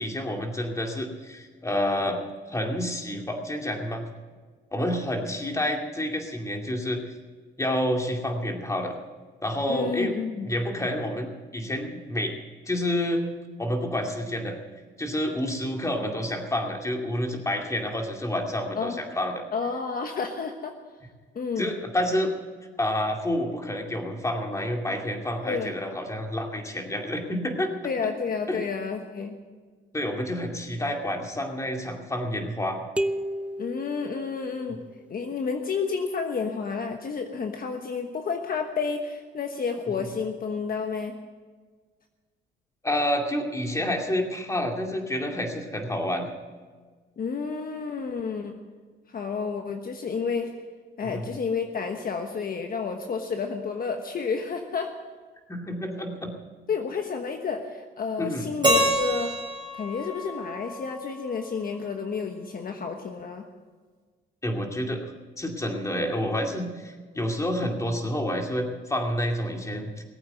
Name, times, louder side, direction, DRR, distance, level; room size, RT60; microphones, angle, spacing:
voice 1, 0.0-2.2 2.5-4.1 4.7-7.0 7.6-9.0 9.4-10.1 10.4-12.4 12.7-13.2 13.6-14.6 15.0-19.4 21.6-22.3 22.8-27.7 28.5-28.6 29.9-32.8 40.0-40.1 42.8-46.3 51.0-51.3 55.5-56.3 58.2-58.5 64.4-65.0 65.4-70.0, left 1 dB, 15° left, 2 dB, 2.4 m, -29 dB
voice 2, 9.7-10.5 18.8-19.0 19.5-20.8 21.3-21.7 25.5-25.7 27.8-29.4 33.6-34.8 35.1-41.2 47.2-48.6 49.1-50.5 51.0-54.9 56.7-59.4 59.7-63.4, left 5 dB, 45° left, 5 dB, 1.2 m, -30 dB
sound 1, 33.0-34.8, right 1 dB, 5° right, 0.7 m, -32 dB
Keyboard (musical), 58.6-61.6, equal, 25° right, 4.2 m, -27 dB
19.5 x 8.6 x 8.0 m, 1.5 s
cardioid pair, 90°, 20 cm